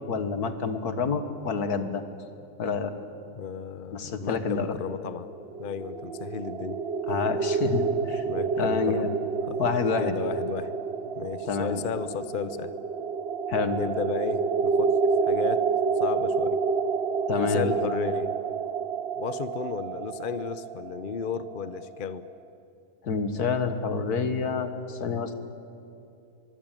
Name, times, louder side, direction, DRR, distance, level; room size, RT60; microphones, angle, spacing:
voice 1, 0.1-2.0 2.6-2.9 3.9-4.8 7.1-8.2 8.6-9.2 9.6-10.1 11.5-11.8 13.5-13.8 17.3-17.7 23.0-25.3, left 5 dB, 75° left, 9 dB, 2.1 m, -28 dB
voice 2, 3.3-5.3 5.6-6.8 7.2-7.4 8.3-9.1 9.5-9.6 10.0-10.7 11.2-12.7 13.8-14.9 15.3-15.7 16.0-16.6 17.4-18.3 19.2-22.3, left 6 dB, 40° left, 13 dB, 0.8 m, -33 dB
sound 1, 5.3-22.1, right 5 dB, 45° right, 1.0 m, -29 dB
24.0 x 23.0 x 9.1 m, 2.7 s
omnidirectional pair, 1.7 m